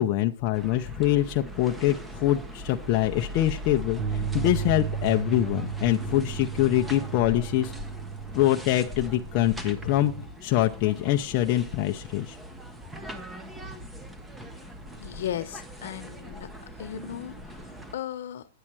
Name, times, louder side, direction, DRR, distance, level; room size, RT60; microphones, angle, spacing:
voice 1, 0.0-7.7 8.3-12.4, left 13 dB, 40° left, 5 dB, 0.6 m, -24 dB
sound 1, 0.5-17.9, equal, 5° right, 1.0 m, -40 dB
sound 2, 4.0-10.2, right 7 dB, 60° right, 1.4 m, -35 dB
sound 3, 7.7-15.3, right 1 dB, 35° right, 6.8 m, -51 dB
voice 2, 15.0-16.5 16.8-18.5, left 10 dB, 70° left, 11 dB, 1.0 m, -36 dB
9.9 x 8.6 x 4.6 m, 0.36 s
hypercardioid pair, 145°, 0 cm